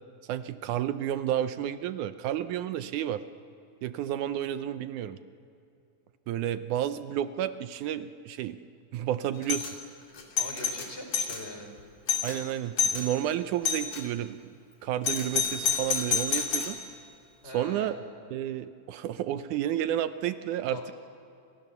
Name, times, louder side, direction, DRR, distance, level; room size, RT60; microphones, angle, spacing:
voice 1, 0.3-3.2 3.8-5.2 6.3-8.6 8.9-9.7 12.2-16.8 17.4-17.9 18.3-20.8, right 11 dB, 80° right, 11 dB, 2.2 m, -31 dB
Doorbell, 9.4-9.7 10.2-11.4 11.8-11.9 12.1-12.4 12.8-13.1 13.7-14.0 15.0-16.8, left 6 dB, 80° left, 4.3 m, -28 dB
voice 2, 10.4-11.7 17.4-18.1 20.7-20.9, left 1 dB, 20° left, 3 dB, 4.7 m, -42 dB
29.5 x 27.5 x 6.9 m, 2.6 s
omnidirectional pair, 3.5 m